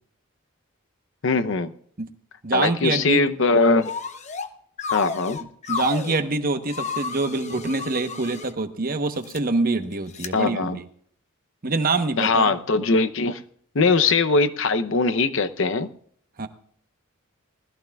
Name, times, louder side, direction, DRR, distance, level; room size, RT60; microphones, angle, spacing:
voice 1, 1.2-1.7 2.5-3.9 4.9-5.4 10.3-10.8 12.2-13.4 13.7-15.9, left 3 dB, 65° left, 10 dB, 0.8 m, -21 dB
voice 2, 2.4-3.2 5.7-10.8 11.6-12.5 16.4-16.5, right 3 dB, 45° right, 8 dB, 1.1 m, -25 dB
sound 1, 3.8-4.5 4.8-6.2 6.7-8.5 9.1-9.4 10.1-10.3, left 5 dB, 35° left, 0.8 m, -31 dB
20.0 x 14.0 x 2.4 m, 0.63 s
head